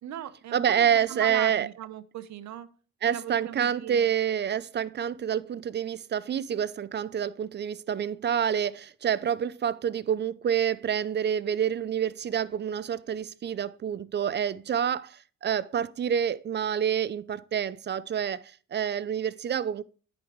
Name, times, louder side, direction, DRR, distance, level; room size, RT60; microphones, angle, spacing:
voice 1, 0.0-2.7 3.1-4.1, right 10 dB, 65° right, 0.8 m, -39 dB
voice 2, 0.5-1.7 3.0-19.8, right 8 dB, 35° right, 0.4 m, -28 dB
10.0 x 5.1 x 3.1 m
cardioid pair, 90°, 30 cm